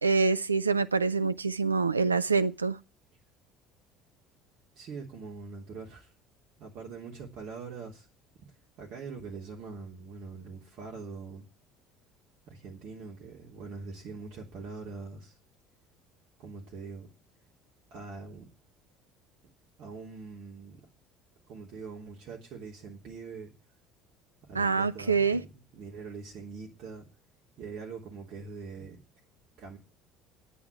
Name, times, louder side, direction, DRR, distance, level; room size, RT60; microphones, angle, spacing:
voice 1, 0.0-2.8 24.5-25.4, right 4 dB, 85° right, 0.6 m, -26 dB
voice 2, 4.7-6.1 6.6-8.1 8.8-11.4 12.5-15.3 16.4-17.1 17.9-18.5 19.8-20.8 21.5-23.5 24.5-27.0 27.6-29.0 29.6-29.8, right 4 dB, 50° right, 3.4 m, -43 dB
10.0 x 10.0 x 9.2 m
figure-of-eight pair, 60°, 0 cm